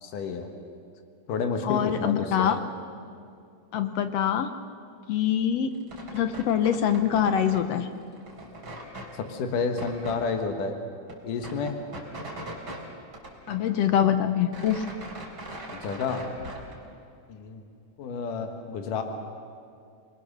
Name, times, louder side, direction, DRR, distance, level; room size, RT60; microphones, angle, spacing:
voice 1, 0.0-0.5 1.3-2.5 9.1-10.7 11.2-11.8 15.8-16.2 17.3-17.6 18.0-19.0, left 5 dB, 85° left, 5 dB, 3.0 m, -30 dB
voice 2, 1.6-2.6 3.7-4.5 5.1-5.7 6.1-7.9 13.5-14.8, left 9 dB, 70° left, 9 dB, 1.6 m, -24 dB
sound 1, 5.7-7.7 8.0-9.1 9.7-10.2 10.6-10.7 10.9-12.8 13.1-14.0 14.3-16.7, right 1 dB, 30° right, 4.1 m, -41 dB
27.0 x 21.0 x 6.6 m, 2.4 s
omnidirectional pair, 3.6 m